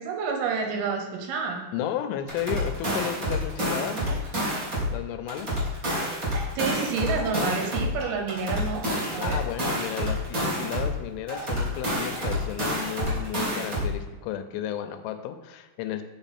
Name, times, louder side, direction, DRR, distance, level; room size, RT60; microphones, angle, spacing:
voice 1, 0.0-1.6 3.9-4.2 6.6-8.8 9.1-9.4, right 5 dB, 90° right, 3 dB, 2.9 m, -29 dB
voice 2, 1.7-4.0 4.9-5.5 7.4-7.6 9.2-16.0, left 10 dB, 85° left, 9 dB, 2.4 m, -33 dB
sound 1, 2.3-4.9 5.3-7.9 8.3-10.9 11.3-13.9, equal, 35° right, 1.3 m, -28 dB
Water / Drip, 6.0-13.0, right 3 dB, 65° right, 1.6 m, -46 dB
8.0 x 3.7 x 4.2 m, 1.2 s
omnidirectional pair, 4.3 m